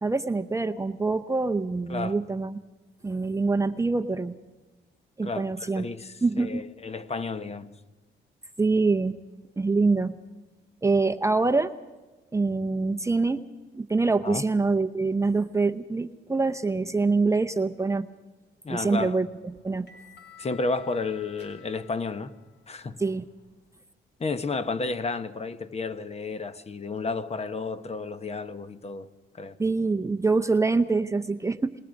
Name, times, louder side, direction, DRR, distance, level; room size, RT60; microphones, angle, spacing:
voice 1, 0.0-2.6 3.0-4.4 5.2-5.8 6.2-6.7 8.6-9.2 9.6-10.2 10.8-11.7 12.3-13.4 13.7-18.1 18.7-19.3 19.6-19.9 23.0-23.3 29.6-31.7, right 3 dB, 15° right, 0.7 m, -25 dB
voice 2, 5.2-7.7 14.2-14.4 18.6-19.2 20.4-22.3 22.7-23.0 24.2-29.1 29.3-29.6, left 3 dB, 30° left, 1.1 m, -32 dB
sound 1, 19.3-23.6, left 9 dB, 60° left, 4.2 m, -54 dB
25.5 x 20.5 x 5.3 m
cardioid pair, 90°, 20 cm